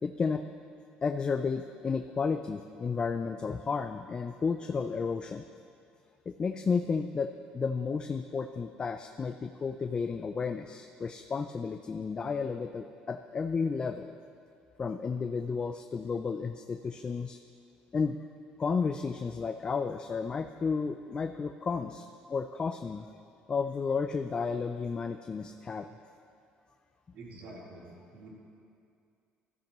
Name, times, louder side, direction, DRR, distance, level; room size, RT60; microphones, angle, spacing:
voice 1, 0.0-0.5 1.0-5.4 6.3-14.1 14.8-17.4 17.9-18.2 18.6-23.1 23.5-25.9, left 5 dB, 25° left, 7 dB, 0.4 m, -32 dB
voice 2, 27.1-28.3, right 2 dB, 65° right, -5 dB, 3.3 m, -47 dB
15.5 x 13.5 x 3.0 m, 2.4 s
cardioid pair, 115°, 3 cm